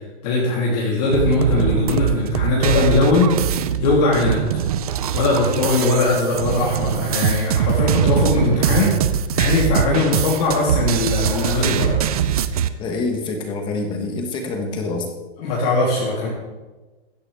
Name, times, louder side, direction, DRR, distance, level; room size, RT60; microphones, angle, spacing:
voice 1, 0.2-3.3 3.8-4.4 5.1-12.0 15.4-16.3, left 3 dB, 35° left, -5 dB, 3.0 m, -20 dB
sound 1, 1.1-12.7, right 9 dB, 35° right, 0.5 m, -22 dB
voice 2, 12.8-15.1, left 3 dB, 15° left, 4 dB, 1.1 m, -26 dB
16.0 x 14.0 x 3.4 m, 1.2 s
supercardioid pair, 175°, 34 cm